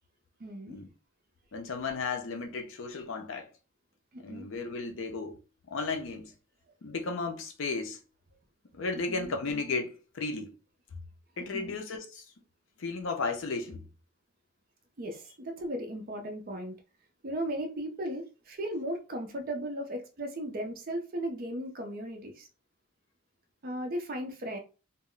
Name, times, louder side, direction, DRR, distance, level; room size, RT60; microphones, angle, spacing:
voice 1, 0.4-0.8 4.1-4.5 9.1-9.3 11.5-11.7 15.0-16.8 17.2-22.5 23.6-24.6, right 1 dB, 40° right, 0.5 m, -36 dB
voice 2, 1.5-3.5 4.2-5.4 5.7-6.3 6.8-8.0 8.7-10.5 11.4-12.2 12.8-13.9, left 4 dB, 60° left, 0.5 m, -34 dB
2.1 x 2.0 x 3.7 m
head